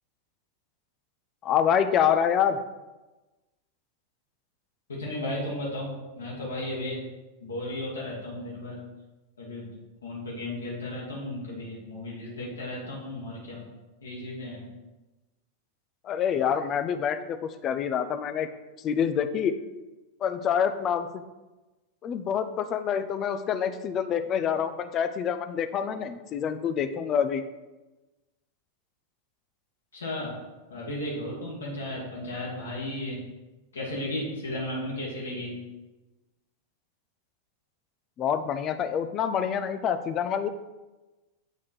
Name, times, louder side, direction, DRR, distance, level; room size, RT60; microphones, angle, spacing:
voice 1, 1.4-2.6 16.0-17.4 17.6-18.5 18.8-19.6 20.2-21.2 22.0-27.4 38.2-40.5, left 8 dB, 30° left, 9 dB, 0.4 m, -26 dB
voice 2, 4.9-7.0 7.4-8.8 9.4-9.7 10.0-13.6 14.0-14.7 29.9-30.4 30.7-33.2 33.7-35.7, left 1 dB, 70° left, -4 dB, 1.5 m, -34 dB
8.0 x 3.6 x 4.4 m, 1.1 s
figure-of-eight pair, 90°, 0 cm